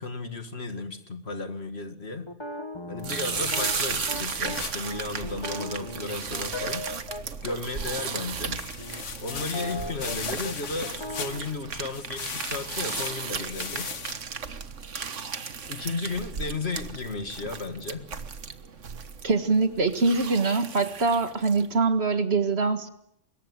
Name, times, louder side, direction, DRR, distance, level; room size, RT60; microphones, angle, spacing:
voice 1, 0.0-2.3 2.9-6.9 7.4-8.6 9.2-13.9 15.7-18.1, left 3 dB, 60° left, 2.4 m, -34 dB
sound 1, 2.3-7.6 8.1-8.3 8.8-10.2 10.4-10.5 10.8-11.4, left 1 dB, 20° left, 1.9 m, -37 dB
sound 2, 3.0-21.7, right 5 dB, 80° right, 1.7 m, -35 dB
sound 3, 3.3-5.0 5.3-5.4 5.8-5.9 6.2-6.3 8.6-11.6 11.9-14.1, left 5 dB, 80° left, 1.9 m, -37 dB
voice 2, 19.2-22.9, right 4 dB, 60° right, 2.0 m, -23 dB
25.0 x 22.0 x 9.7 m
omnidirectional pair, 1.2 m